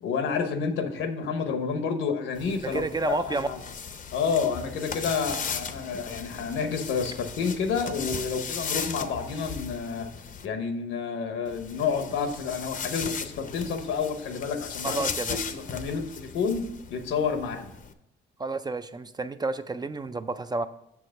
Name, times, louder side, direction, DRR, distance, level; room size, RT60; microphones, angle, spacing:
voice 1, 0.0-2.8 3.1-3.6 4.1-10.1 10.4-15.1 15.5-16.7 16.9-17.7, left 5 dB, 80° left, 7 dB, 1.0 m, -29 dB
sound 1, 2.3-10.5 11.5-17.9, left 6 dB, 40° left, 0.6 m, -37 dB
voice 2, 2.6-3.5 14.8-15.4 18.4-20.7, right 3 dB, 20° right, 11 dB, 0.4 m, -30 dB
7.0 x 4.7 x 6.4 m, 0.85 s
cardioid pair, 90°, 20 cm